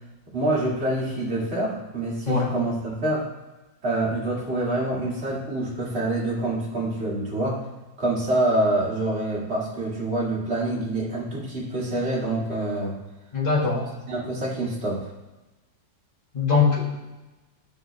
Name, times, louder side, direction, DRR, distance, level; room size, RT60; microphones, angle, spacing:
voice 1, 0.3-3.2 3.8-7.6 8.0-13.0 13.7-15.1, right 1 dB, 35° right, -5 dB, 2.3 m, -26 dB
voice 2, 13.3-13.8 16.3-17.0, left 5 dB, 25° left, -5 dB, 1.9 m, -21 dB
11.5 x 6.6 x 3.4 m, 1.1 s
omnidirectional pair, 2.0 m